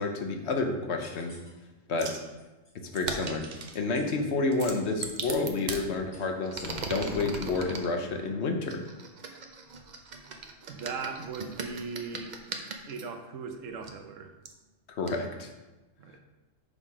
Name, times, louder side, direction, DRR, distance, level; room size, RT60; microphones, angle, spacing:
voice 1, 0.0-1.3 1.9-2.1 2.9-3.4 3.7-8.8 15.0-15.5, left 3 dB, 60° left, 4 dB, 1.1 m, -29 dB
sound 1, 1.0-1.5 2.0-2.1 2.4-2.7 3.4-3.5 3.9-4.0 4.6-4.7 5.2-5.3 5.7-5.8 6.1-6.2 6.6-6.7 7.0-7.1 7.6-7.7, left 1 dB, 30° left, 1.8 m, -51 dB
sound 2, 2.0-2.3 2.9-3.8 4.5-5.8 6.4-7.9 8.7-13.0 13.8-13.9 14.5-14.6 15.1-15.2, right 4 dB, 45° right, 0.7 m, -38 dB
voice 2, 10.7-12.4 12.9-14.3 16.0-16.2, right 5 dB, 85° right, 6 dB, 1.1 m, -38 dB
5.6 x 5.2 x 4.8 m, 1.1 s
omnidirectional pair, 1.3 m